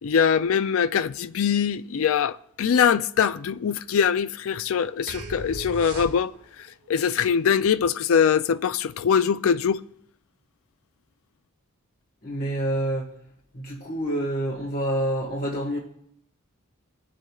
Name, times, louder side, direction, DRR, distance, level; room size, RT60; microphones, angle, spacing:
voice 1, 0.0-6.3 6.9-9.8, left 7 dB, 65° left, 0.4 m, -22 dB
sound 1, 5.1-6.6, right 1 dB, 90° right, 1.3 m, -36 dB
voice 2, 12.2-13.0 13.5-15.8, right 1 dB, 40° left, 1.6 m, -27 dB
19.5 x 7.6 x 2.4 m
head